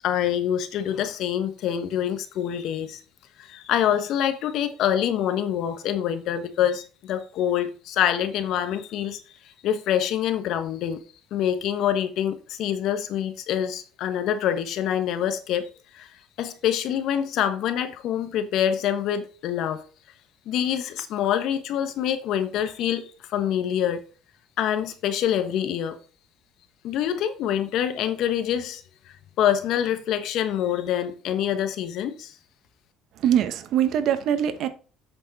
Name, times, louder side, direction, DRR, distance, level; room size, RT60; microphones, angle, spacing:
voice 1, 0.0-3.0 3.4-9.2 9.6-11.0 11.3-16.1 16.4-19.8 20.5-24.0 24.6-26.0 26.8-28.8 29.4-32.3, left 10 dB, 65° left, 1.2 m, -26 dB
voice 2, 33.2-34.7, right 9 dB, 60° right, 1.1 m, -22 dB
8.0 x 6.6 x 4.1 m
cardioid pair, 125°, 0 cm